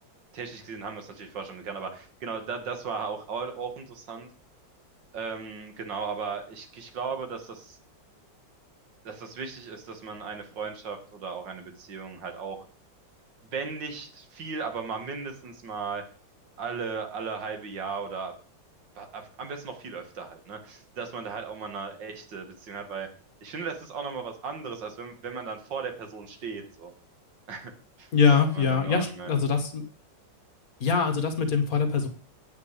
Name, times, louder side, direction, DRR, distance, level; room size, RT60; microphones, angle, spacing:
voice 1, 0.3-4.3 5.1-7.8 9.0-12.6 13.5-16.0 16.6-18.3 19.0-23.1 23.4-26.9 27.5-27.7 28.0-28.1 28.5-29.4, right 5 dB, 75° right, 6 dB, 2.2 m, -36 dB
voice 2, 28.1-29.8 30.8-32.1, left 5 dB, 50° left, 6 dB, 1.7 m, -23 dB
8.4 x 5.8 x 8.1 m, 0.42 s
omnidirectional pair, 2.0 m